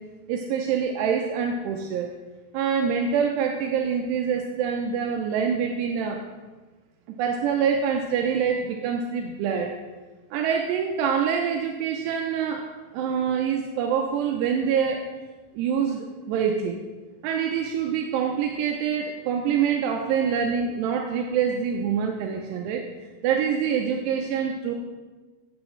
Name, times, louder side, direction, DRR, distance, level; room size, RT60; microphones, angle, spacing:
voice 1, 0.3-2.1 2.5-6.2 7.2-9.7 10.3-12.7 12.9-15.0 15.5-16.8 17.2-22.9 23.2-24.8, right 7 dB, 80° right, 2 dB, 2.8 m, -25 dB
15.0 x 8.6 x 3.2 m, 1.3 s
omnidirectional pair, 4.9 m